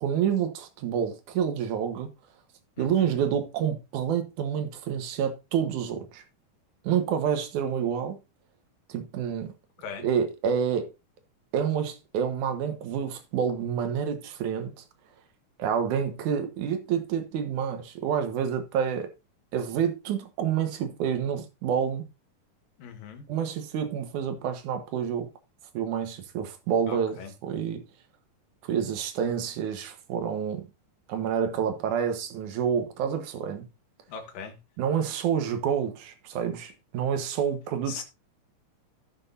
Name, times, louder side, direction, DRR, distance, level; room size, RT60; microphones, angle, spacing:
voice 1, 0.0-2.1 2.8-6.2 6.8-8.2 8.9-9.5 10.0-10.9 11.5-14.8 15.6-19.1 19.5-22.1 23.3-25.3 25.7-27.8 28.6-30.7 31.1-33.7 34.8-38.0, right 8 dB, 70° right, 2.6 m, -28 dB
voice 2, 2.8-3.2 9.8-10.1 22.8-23.3 26.9-27.3 34.1-34.6 37.9-38.0, left 6 dB, 90° left, 3.1 m, -40 dB
15.0 x 6.1 x 2.7 m
omnidirectional pair, 3.8 m